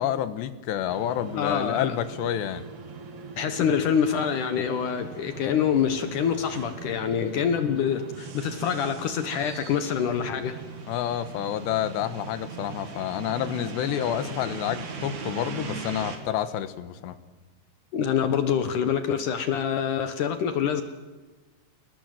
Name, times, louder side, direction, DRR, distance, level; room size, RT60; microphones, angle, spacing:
voice 1, 0.0-2.6 10.9-17.1, left 11 dB, 85° left, 12 dB, 3.4 m, -29 dB
sound 1, 0.9-16.2, right 6 dB, 50° right, 3.3 m, -40 dB
voice 2, 1.4-2.0 3.4-10.6 17.9-20.8, left 8 dB, 65° left, 9 dB, 2.2 m, -26 dB
28.0 x 19.0 x 7.7 m, 1.3 s
omnidirectional pair, 4.8 m